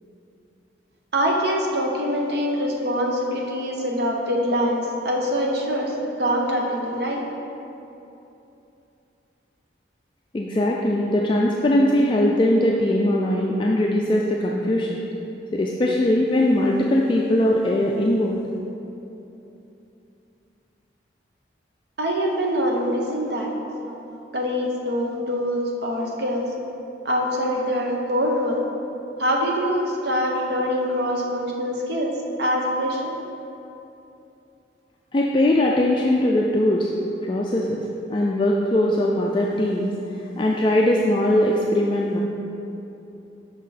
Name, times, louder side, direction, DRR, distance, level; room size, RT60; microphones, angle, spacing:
voice 1, 1.1-5.9 6.2-7.2 22.0-23.5 23.8-26.5 27.0-28.6 29.2-33.1, equal, 60° right, -1 dB, 0.8 m, -24 dB
voice 2, 10.3-15.0 15.5-18.4 35.1-36.9 37.2-39.9 40.4-42.2, left 1 dB, 25° left, -2 dB, 0.3 m, -20 dB
6.2 x 5.4 x 4.1 m, 2.9 s
head